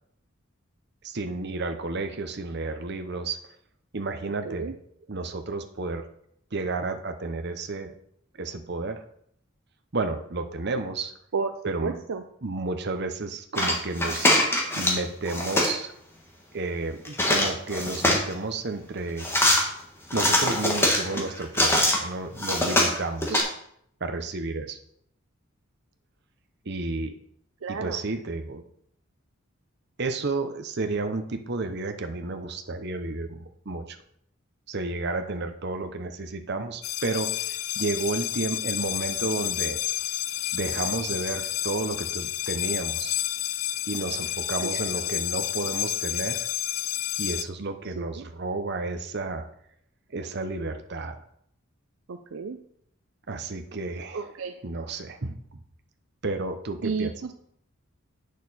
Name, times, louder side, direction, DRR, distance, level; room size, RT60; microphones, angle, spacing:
voice 1, 1.0-3.5 3.9-4.8 5.1-6.0 6.5-8.0 8.3-9.0 9.9-11.1 11.6-11.9 12.4-14.4 14.8-15.9 16.5-19.3 20.1-23.5 24.0-24.8 26.6-27.1 27.7-28.6 30.0-34.0 34.7-39.8 40.5-43.2 43.9-46.5 47.2-49.5 50.1-51.2 53.3-54.3 54.6-55.4 56.2-57.3, right 3 dB, 50° right, 6 dB, 0.8 m, -31 dB
voice 2, 11.8-12.2 23.3-23.4 27.6-28.0 44.6-45.1 48.0-48.3 52.1-52.6 54.1-54.5 56.8-57.1, right 5 dB, 70° right, 7 dB, 0.5 m, -31 dB
sound 1, 13.6-15.0 15.3-15.7 17.1-18.3 19.2-19.6 20.1-22.0 22.4-23.4, left 1 dB, 10° left, 1.4 m, -23 dB
sound 2, 36.8-47.4, left 14 dB, 80° left, 0.4 m, -30 dB
8.5 x 6.5 x 4.2 m, 0.69 s
head